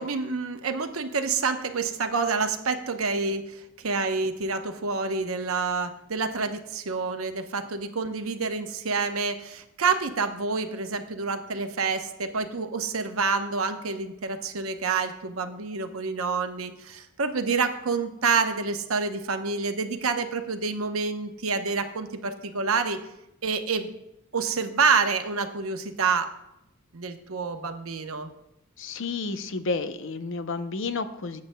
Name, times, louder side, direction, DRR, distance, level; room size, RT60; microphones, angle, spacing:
voice 1, 0.0-23.0 23.4-23.9 24.3-26.3 26.9-28.3, right 4 dB, 85° right, 7 dB, 0.9 m, -28 dB
voice 2, 28.8-31.4, left 3 dB, 65° left, 10 dB, 0.7 m, -31 dB
17.5 x 8.5 x 2.2 m, 0.86 s
head